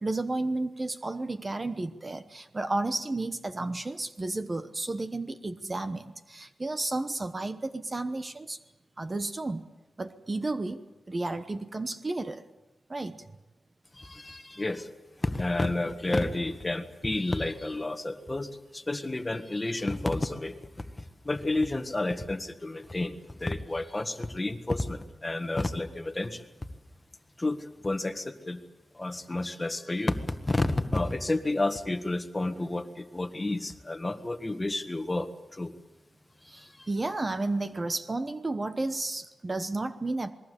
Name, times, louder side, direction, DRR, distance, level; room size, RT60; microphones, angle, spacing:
voice 1, 0.0-8.6 9.0-9.6 10.0-12.4 12.9-13.2 36.5-40.3, right 2 dB, 25° right, 10 dB, 1.0 m, -32 dB
voice 2, 13.9-14.9 15.2-26.5 27.4-28.6 28.9-35.7 36.4-36.9, left 2 dB, 20° left, 9 dB, 1.6 m, -31 dB
28.0 x 21.0 x 8.3 m, 1.0 s
wide cardioid pair, 125°, 0 cm